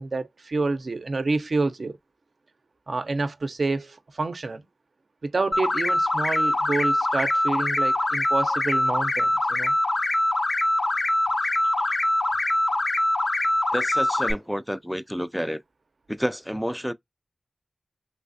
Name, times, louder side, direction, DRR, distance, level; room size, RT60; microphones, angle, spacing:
voice 1, 0.0-2.0 2.9-4.7 5.2-9.7 11.6-12.0, right 3 dB, 65° right, 0.5 m, -28 dB
sound 1, 5.5-14.3, left 1 dB, 50° left, 0.5 m, -23 dB
voice 2, 13.7-15.6 16.1-16.9, equal, ahead, 0.3 m, -29 dB
3.2 x 3.2 x 2.5 m
cardioid pair, 45°, 0 cm